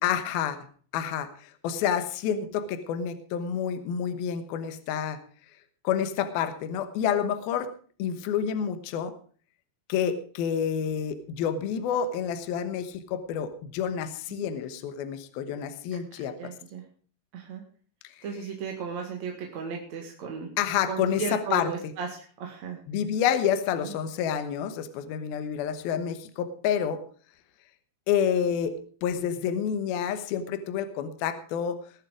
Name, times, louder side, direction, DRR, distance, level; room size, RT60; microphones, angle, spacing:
voice 1, 0.0-0.6 0.9-5.2 5.8-7.7 8.0-9.1 9.9-16.4 20.6-21.9 22.9-27.0 28.1-31.8, left 8 dB, 70° left, 10 dB, 2.7 m, -29 dB
voice 2, 16.4-16.8 17.3-17.6 18.2-20.5 20.9-22.8 23.8-23.9, right 6 dB, 50° right, 1 dB, 2.5 m, -35 dB
21.0 x 7.4 x 4.9 m, 0.43 s
omnidirectional pair, 5.0 m